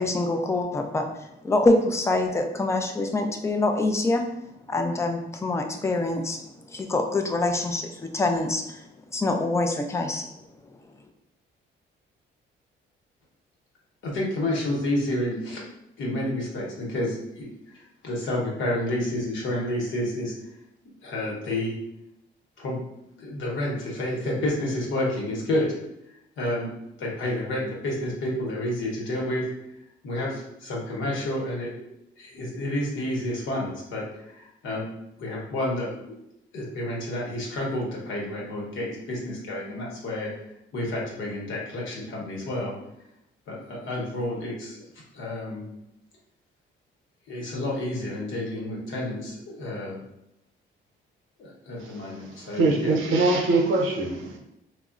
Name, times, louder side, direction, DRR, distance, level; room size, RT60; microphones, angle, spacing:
voice 1, 0.0-4.2 4.7-6.4 6.7-10.3, left 2 dB, 15° left, 4 dB, 0.4 m, -25 dB
voice 2, 14.0-15.6 16.0-20.3 21.0-21.7 22.6-22.8 23.2-25.7 26.4-26.7 27.0-29.4 30.0-31.7 32.2-34.9 35.2-36.1 36.5-40.3 40.7-42.7 43.5-44.8 45.1-45.6 47.3-50.0 51.4-52.9, left 1 dB, 75° left, -3 dB, 1.0 m, -30 dB
voice 3, 52.5-54.4, right 2 dB, 90° right, 1 dB, 0.6 m, -22 dB
3.5 x 2.0 x 2.4 m, 0.84 s
cardioid pair, 90°, 20 cm